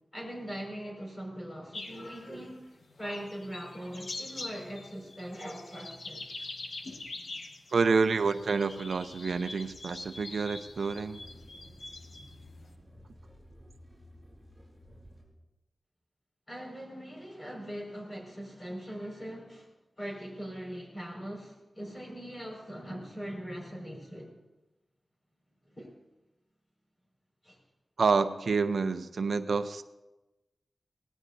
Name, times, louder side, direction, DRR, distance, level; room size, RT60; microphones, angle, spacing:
voice 1, 0.1-2.6 3.0-6.5 16.5-19.7 20.0-24.4 25.7-25.9 27.4-27.6, equal, 30° left, -1 dB, 5.4 m, -41 dB
sound 1, 1.7-12.7, left 2 dB, 70° left, 1.4 m, -44 dB
voice 2, 7.7-11.2 28.0-29.8, right 4 dB, 75° right, 10 dB, 0.6 m, -28 dB
sound 2, 8.2-15.2, left 1 dB, ahead, 6.8 m, -55 dB
24.5 x 18.0 x 2.7 m, 1.0 s
wide cardioid pair, 110°, 0 cm